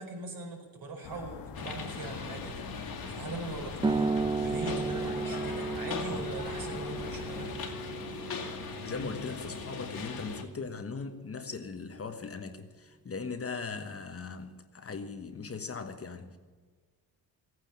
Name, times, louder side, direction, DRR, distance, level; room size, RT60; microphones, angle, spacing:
voice 1, 0.0-4.1 4.4-7.8, right 3 dB, 55° right, 1 dB, 4.8 m, -41 dB
sound 1, 1.0-7.6, left 5 dB, 90° left, 1.6 m, -45 dB
sound 2, 1.5-10.4, left 5 dB, 60° left, 2.2 m, -40 dB
sound 3, 3.8-11.0, right 4 dB, 10° right, 0.6 m, -35 dB
voice 2, 8.8-16.4, left 4 dB, 35° left, 7 dB, 1.3 m, -39 dB
16.5 x 9.4 x 8.7 m, 1.5 s
cardioid pair, 115°, 41 cm